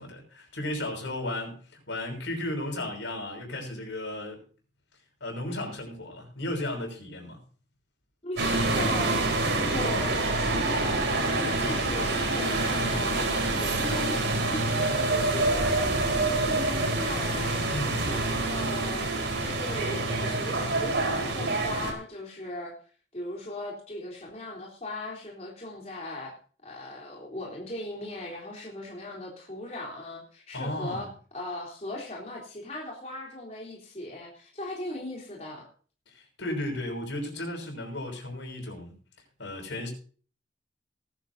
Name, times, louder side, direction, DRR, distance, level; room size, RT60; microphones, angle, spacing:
voice 1, 0.0-4.4 5.2-7.4 17.7-18.0 30.5-31.1 36.1-38.9 39.4-39.9, left 1 dB, 85° left, 2 dB, 6.2 m, -34 dB
voice 2, 8.2-11.0 11.3-19.1 19.4-22.7 23.1-26.3 26.6-31.1 31.3-35.7, left 2 dB, 35° left, -2 dB, 3.7 m, -38 dB
sound 1, 8.4-21.9, right 2 dB, 85° right, 4.3 m, -27 dB
19.0 x 11.5 x 2.8 m, 0.41 s
head